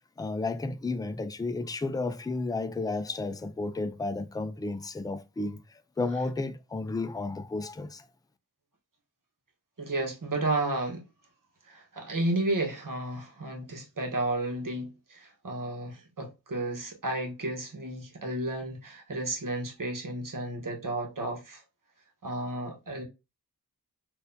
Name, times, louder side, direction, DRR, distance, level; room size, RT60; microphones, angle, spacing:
voice 1, 0.2-8.1, left 3 dB, 10° left, 0.3 m, -32 dB
voice 2, 9.8-11.0 11.6-21.6 22.2-23.0, right 2 dB, 60° right, 1.2 m, -32 dB
4.1 x 2.6 x 2.6 m
wide cardioid pair, 65°, 38 cm